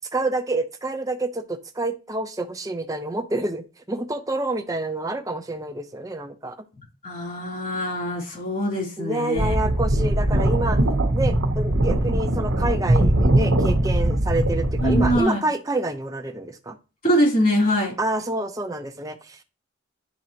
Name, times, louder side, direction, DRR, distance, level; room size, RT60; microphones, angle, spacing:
voice 1, 0.1-6.6 9.0-10.8 11.1-16.8 18.0-19.4, right 2 dB, 15° right, 6 dB, 0.7 m, -28 dB
voice 2, 7.0-9.5 14.8-15.4 17.0-17.9, equal, 45° left, -2 dB, 3.1 m, -23 dB
sound 1, 9.4-15.2, right 1 dB, 85° right, 1.0 m, -21 dB
10.5 x 3.9 x 2.9 m, 0.33 s
head